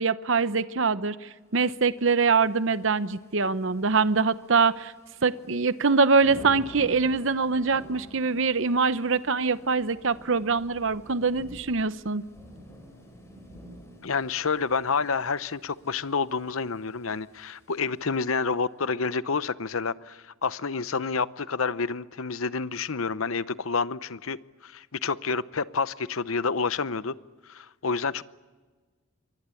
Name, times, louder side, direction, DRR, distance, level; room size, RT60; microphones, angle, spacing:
voice 1, 0.0-4.9 5.2-12.2, right 4 dB, 60° right, 14 dB, 0.8 m, -24 dB
Thunder / Rain, 1.9-18.5, equal, 15° left, 6.6 m, -50 dB
voice 2, 14.0-24.4 24.6-27.1 27.5-28.2, left 5 dB, 70° left, 16 dB, 0.8 m, -29 dB
27.0 x 24.0 x 8.5 m, 1.3 s
head